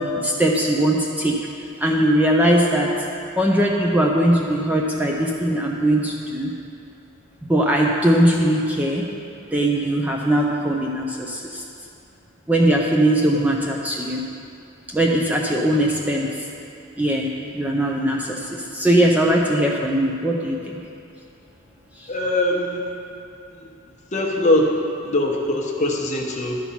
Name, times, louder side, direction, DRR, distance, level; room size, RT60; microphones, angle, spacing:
voice 1, 0.2-1.4 1.8-2.9 3.4-6.5 7.4-9.1 9.5-11.6 12.5-14.2 14.9-16.3 17.0-17.3 17.5-20.8 22.0-22.1, right 1 dB, 10° right, -1 dB, 0.5 m, -20 dB
voice 2, 22.1-22.8 23.5-23.7 24.1-24.7 25.0-26.6, left 1 dB, 35° left, -1 dB, 1.0 m, -22 dB
11.0 x 4.3 x 5.7 m, 2.6 s
head